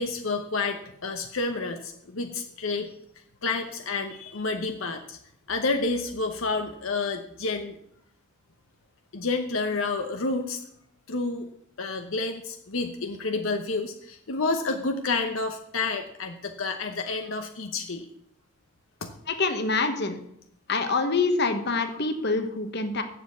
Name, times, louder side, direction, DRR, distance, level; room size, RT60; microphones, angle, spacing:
voice 1, 0.0-2.9 3.4-5.2 5.5-7.8 9.1-10.6 11.1-11.5 11.8-18.0 19.0-19.1 21.9-22.0, left 3 dB, 75° left, 5 dB, 0.9 m, -29 dB
voice 2, 19.3-20.2 20.7-23.0, left 3 dB, 50° left, 8 dB, 1.1 m, -26 dB
7.4 x 6.8 x 8.2 m, 0.71 s
head